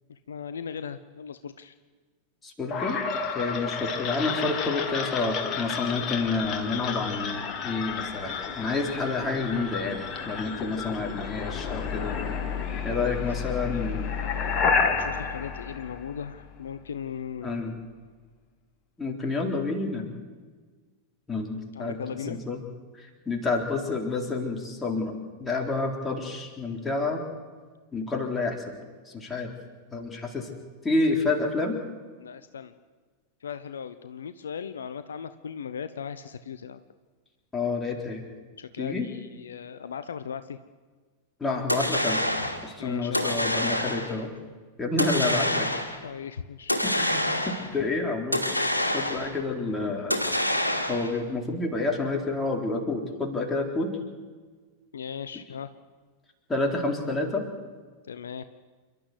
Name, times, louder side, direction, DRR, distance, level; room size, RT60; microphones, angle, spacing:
voice 1, 0.1-1.7 13.7-17.7 21.7-22.4 32.2-32.7 33.4-36.8 38.6-40.6 42.8-43.6 46.0-46.8 54.9-55.7 58.1-58.4, left 7 dB, 65° left, 12 dB, 0.7 m, -38 dB
voice 2, 2.4-3.0 3.3-12.2 12.8-14.1 17.4-17.7 19.0-20.1 21.3-22.0 22.3-22.6 23.0-27.2 27.9-29.5 29.9-30.5 30.8-31.8 37.5-38.2 38.8-39.1 41.4-42.2 42.6-44.3 44.8-45.7 46.8-50.2 50.9-54.0 56.5-57.4, left 3 dB, 15° left, 1 dB, 3.8 m, -29 dB
sound 1, 2.7-16.6, left 6 dB, 30° left, 2.4 m, -31 dB
sound 2, 41.7-42.7 43.1-44.2 45.0-46.0 46.7-47.8 48.3-49.4 50.1-51.2, left 1 dB, 85° left, 2.0 m, -27 dB
28.5 x 12.0 x 8.1 m, 1.5 s
figure-of-eight pair, 90°, 0 cm